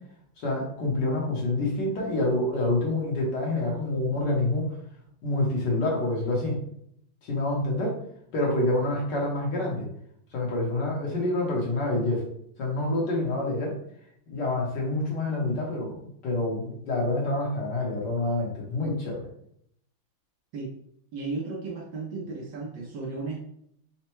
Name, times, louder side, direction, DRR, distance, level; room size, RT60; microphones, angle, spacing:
voice 1, 0.4-4.7 5.2-6.6 7.2-8.0 8.3-9.9 10.3-12.2 12.6-13.7 14.3-19.3, left 2 dB, 60° left, -2 dB, 1.5 m, -27 dB
voice 2, 21.1-23.4, right 3 dB, 65° right, -1 dB, 1.3 m, -34 dB
4.2 x 2.2 x 4.4 m, 0.71 s
omnidirectional pair, 2.4 m